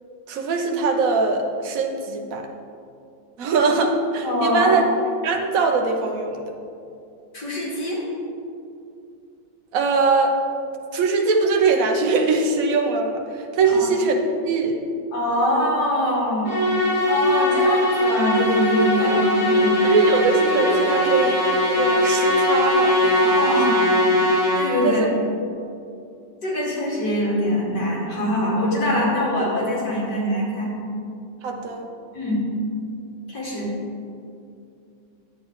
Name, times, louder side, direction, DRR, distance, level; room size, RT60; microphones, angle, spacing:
voice 1, 0.3-2.5 3.4-4.8 5.2-6.4 9.7-10.4 10.9-14.2 14.4-14.8 19.0-19.4 19.8-21.4 21.8-23.6 24.8-25.1 31.4-31.9, right 4 dB, 55° right, 3 dB, 1.1 m, -22 dB
voice 2, 4.2-4.7 7.3-8.0 13.6-13.9 15.1-16.5 17.0-19.8 23.3-23.8 24.6-25.1 26.4-30.7 32.1-32.5 33.3-33.7, left 1 dB, 65° left, -6 dB, 2.8 m, -23 dB
Musical instrument, 16.5-25.0, left 1 dB, 25° left, 1.6 m, -20 dB
10.5 x 7.7 x 3.1 m, 2.5 s
omnidirectional pair, 2.0 m